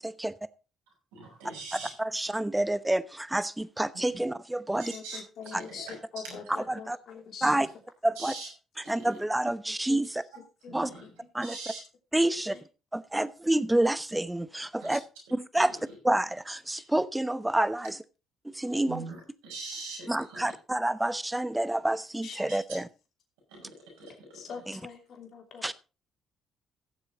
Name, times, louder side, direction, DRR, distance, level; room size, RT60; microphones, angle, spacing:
voice 1, 1.1-1.9 4.8-6.0 6.2-6.4 7.4-7.5 8.2-8.5 8.8-9.1 10.7-11.1 11.4-11.8 14.8-15.0 15.5-15.8 18.9-20.4 22.5-22.6 23.5-24.4, right 3 dB, 85° right, 6.3 m, -42 dB
voice 2, 2.0-4.9 5.5-5.6 6.7-7.0 7.4-7.7 8.0-8.3 8.9-10.2 10.7-10.9 11.3-11.6 12.1-12.6 12.9-15.0 15.3-15.8 16.0-18.0 18.4-19.0 20.1-22.9 24.7-24.8 25.6-25.7, right 1 dB, 10° right, 0.9 m, -28 dB
voice 3, 4.9-5.9 6.1-7.5 9.9-10.0 10.6-11.1 11.4-11.5 16.7-16.8 22.2-22.6 24.3-25.7, left 6 dB, 60° left, 3.0 m, -44 dB
16.0 x 7.4 x 4.1 m
hypercardioid pair, 55°, 0 cm